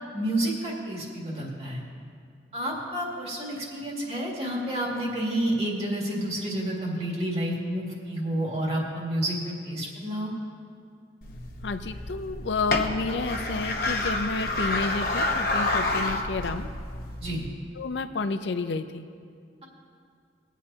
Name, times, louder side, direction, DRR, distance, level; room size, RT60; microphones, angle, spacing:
voice 1, 0.1-1.8 2.5-10.3 17.2-17.4, right 1 dB, 35° right, -3 dB, 2.2 m, -30 dB
sound 1, 11.2-17.5, left 2 dB, 55° left, 1.0 m, -29 dB
voice 2, 11.6-16.7 17.7-19.0, left 3 dB, 85° left, 9 dB, 0.6 m, -30 dB
22.5 x 8.2 x 2.9 m, 2.3 s
head